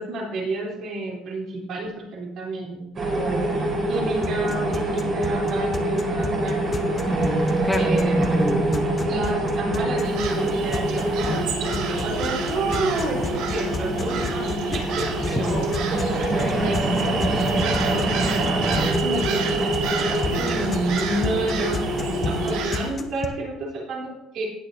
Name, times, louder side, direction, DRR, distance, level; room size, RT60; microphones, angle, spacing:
voice 1, 0.0-7.1 7.8-8.5 9.1-15.9 16.1-19.7 20.1-21.8 22.2-24.5, right 2 dB, 55° right, -3 dB, 3.7 m, -30 dB
sound 1, 2.9-22.6, right 1 dB, 35° right, 3.3 m, -25 dB
sound 2, 4.2-23.3, left 4 dB, 25° left, 0.8 m, -33 dB
voice 2, 7.2-8.9 15.3-15.7 22.2-22.5, equal, ahead, 2 dB, 1.0 m, -26 dB
sound 3, 10.0-22.9, right 6 dB, 75° right, 1.7 m, -32 dB
17.5 x 6.4 x 2.8 m, 0.91 s
cardioid pair, 130°, 0 cm